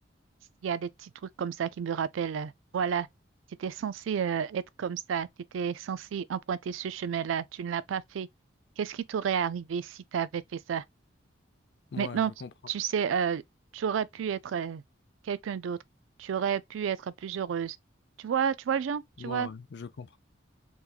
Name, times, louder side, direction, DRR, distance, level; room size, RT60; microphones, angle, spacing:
voice 1, 0.6-1.1 1.4-3.1 3.6-5.3 5.5-8.3 8.8-10.8 12.0-12.3 12.7-13.4 13.7-14.8 15.2-15.8 16.2-17.8 18.2-19.5, right 7 dB, 90° right, 0.4 m, -31 dB
voice 2, 11.9-12.5 19.2-20.2, left 5 dB, 60° left, 0.4 m, -40 dB
3.5 x 3.1 x 2.4 m
head